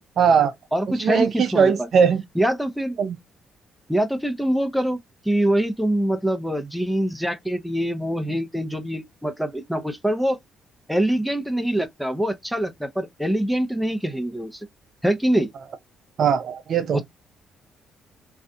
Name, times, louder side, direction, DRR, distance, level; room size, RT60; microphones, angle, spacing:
voice 1, 0.2-0.5 0.9-2.2 3.0-3.2 16.2-17.0, right 6 dB, 60° right, 0.4 m, -20 dB
voice 2, 0.7-1.9 2.4-3.0 3.9-5.0 5.2-10.4 10.9-14.7 15.0-15.5 16.9-17.0, right 1 dB, ahead, 0.6 m, -24 dB
2.6 x 2.4 x 2.2 m
supercardioid pair, 65°, 0 cm